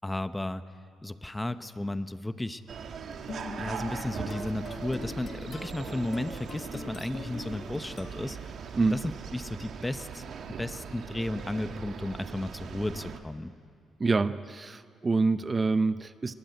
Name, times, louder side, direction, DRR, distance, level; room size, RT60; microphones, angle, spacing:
voice 1, 0.0-0.6 1.0-2.6 3.6-8.5 8.9-10.2 10.6-13.5, left 1 dB, 10° left, 12 dB, 0.9 m, -34 dB
sound 1, 2.7-13.2, right 6 dB, 60° right, 1.6 m, -40 dB
sound 2, 3.3-8.7, left 5 dB, 45° left, 1.4 m, -43 dB
voice 2, 14.0-16.3, right 3 dB, 30° right, 13 dB, 0.6 m, -26 dB
23.0 x 19.5 x 9.1 m, 2.3 s
cardioid pair, 90°, 0 cm